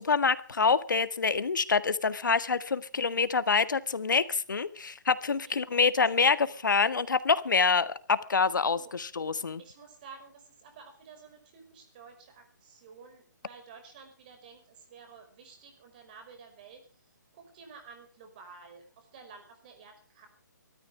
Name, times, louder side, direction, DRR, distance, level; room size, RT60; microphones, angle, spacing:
voice 1, 0.0-9.6, left 5 dB, 85° left, 13 dB, 1.7 m, -26 dB
voice 2, 5.4-6.6 8.7-8.9 9.6-20.3, right 5 dB, 30° right, 5 dB, 5.1 m, -52 dB
24.0 x 13.5 x 3.4 m, 0.36 s
hypercardioid pair, 170°, 10 cm